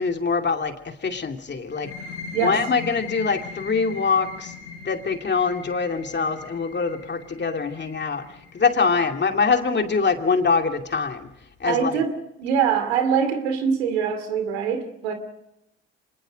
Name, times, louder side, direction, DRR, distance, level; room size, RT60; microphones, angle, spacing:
voice 1, 0.0-1.9 2.4-4.5 4.8-8.3 8.5-11.3 11.6-12.0, left 5 dB, 35° left, 5 dB, 2.5 m, -24 dB
sound 1, 1.7-9.1, left 5 dB, 90° left, 7.1 m, -39 dB
voice 2, 11.6-15.1, right 7 dB, 90° right, 8 dB, 2.6 m, -24 dB
25.5 x 20.5 x 5.2 m, 0.86 s
hypercardioid pair, 60°, 31 cm